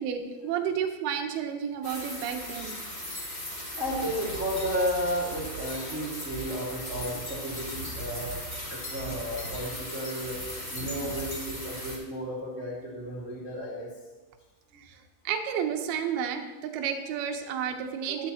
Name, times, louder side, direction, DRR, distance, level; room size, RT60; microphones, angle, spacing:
voice 1, 0.0-2.8 10.8-10.9 14.8-15.0 15.2-18.3, right 8 dB, 75° right, 4 dB, 2.3 m, -31 dB
sound 1, 1.8-12.0, equal, 15° left, 4.2 m, -37 dB
voice 2, 3.7-10.4 10.7-13.9, equal, 30° right, -6 dB, 1.5 m, -33 dB
14.0 x 12.5 x 3.0 m, 1.2 s
omnidirectional pair, 5.8 m